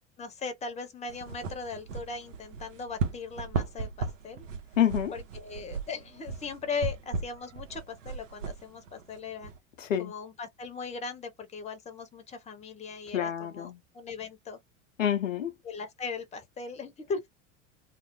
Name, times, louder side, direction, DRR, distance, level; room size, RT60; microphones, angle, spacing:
voice 1, 0.2-4.5 5.1-9.5 10.0-14.6 15.6-17.2, left 4 dB, 20° left, 0.7 m, -38 dB
sound 1, 1.1-9.6, right 4 dB, 80° right, 0.7 m, -36 dB
voice 2, 4.8-5.1 9.8-10.1 13.1-13.8 15.0-15.5, left 10 dB, 80° left, 0.5 m, -27 dB
2.4 x 2.0 x 2.9 m
figure-of-eight pair, 80°, 38 cm